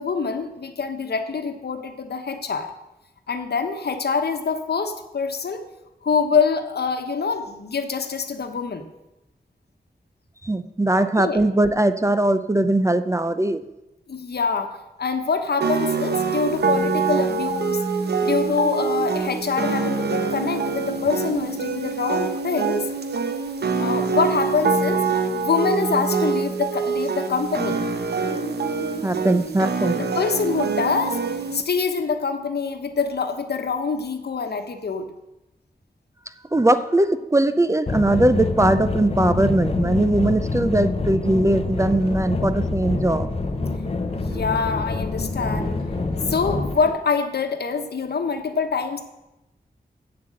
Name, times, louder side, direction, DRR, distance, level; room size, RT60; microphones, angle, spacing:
voice 1, 0.0-2.7 3.3-5.7 6.0-8.9 11.0-11.4 14.1-17.8 18.2-22.9 23.8-25.1 25.3-27.8 29.8-31.2 31.5-35.1 44.3-45.8 46.3-49.0, left 5 dB, 85° left, 7 dB, 1.1 m, -25 dB
voice 2, 10.4-13.6 29.0-30.0 36.5-43.3, right 1 dB, 20° right, 11 dB, 0.5 m, -20 dB
sound 1, 15.6-31.6, right 4 dB, 90° right, 0.9 m, -25 dB
sound 2, 37.9-46.7, left 3 dB, 40° left, 0.6 m, -26 dB
Boat Water vehicle, 39.2-46.9, right 3 dB, 75° right, 3.5 m, -39 dB
7.8 x 7.5 x 7.6 m, 0.95 s
wide cardioid pair, 110°, 16 cm